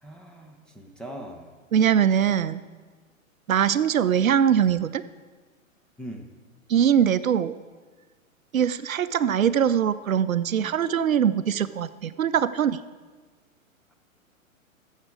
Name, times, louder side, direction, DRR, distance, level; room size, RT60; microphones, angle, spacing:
voice 1, 0.0-1.5 6.0-6.3, right 1 dB, ahead, 1 dB, 0.6 m, -40 dB
voice 2, 1.7-2.6 3.5-5.0 6.7-7.5 8.5-12.8, right 8 dB, 75° right, 15 dB, 0.6 m, -22 dB
15.0 x 7.4 x 4.8 m, 1.4 s
figure-of-eight pair, 110°, 41 cm